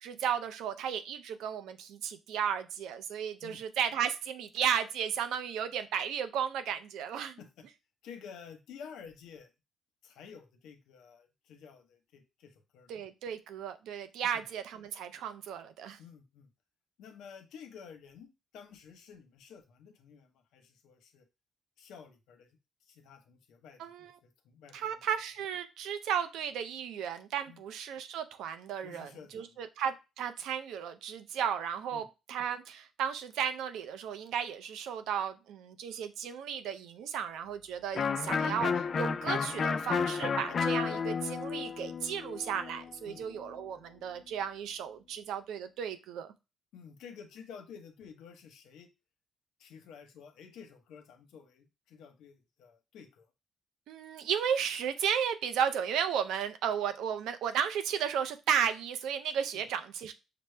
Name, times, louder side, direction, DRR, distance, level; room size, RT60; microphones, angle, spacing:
voice 1, 0.0-7.4 12.9-16.0 23.8-24.1 24.7-46.3 53.9-60.1, right 8 dB, 85° right, 10 dB, 0.5 m, -34 dB
voice 2, 8.0-9.5 10.0-12.9 14.2-14.4 16.0-16.5 17.0-21.3 21.8-25.0 27.5-27.6 28.8-29.7 31.9-32.1 43.0-43.2 46.7-48.9 49.6-53.3 59.5-59.7, left 7 dB, 85° left, 6 dB, 0.8 m, -51 dB
Electric guitar, 37.9-43.6, left 6 dB, 50° left, 0.3 m, -32 dB
5.9 x 2.0 x 3.2 m, 0.26 s
cardioid pair, 90°, 0 cm